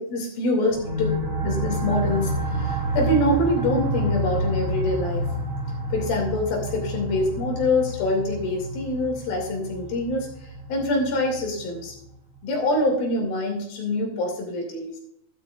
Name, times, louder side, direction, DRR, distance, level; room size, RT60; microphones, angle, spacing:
voice 1, 0.1-1.1 1.4-5.3 5.9-11.9 12.4-14.9, left 1 dB, 80° left, 1 dB, 4.3 m, -25 dB
sound 1, 0.7-12.0, equal, 50° right, 5.3 m, -29 dB
13.0 x 12.5 x 2.5 m, 0.71 s
omnidirectional pair, 4.1 m